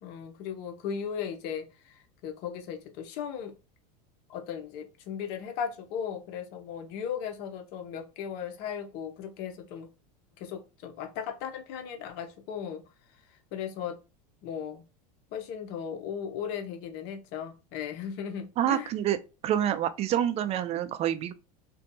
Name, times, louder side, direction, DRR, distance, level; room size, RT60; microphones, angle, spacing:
voice 1, 0.0-3.5 4.3-9.9 10.4-12.8 13.5-14.0 14.4-14.8 15.3-18.9, left 8 dB, 55° left, 0.7 m, -37 dB
voice 2, 18.6-19.2 19.4-21.3, right 11 dB, 30° right, 0.4 m, -27 dB
2.6 x 2.2 x 2.6 m
hypercardioid pair, 110°, 21 cm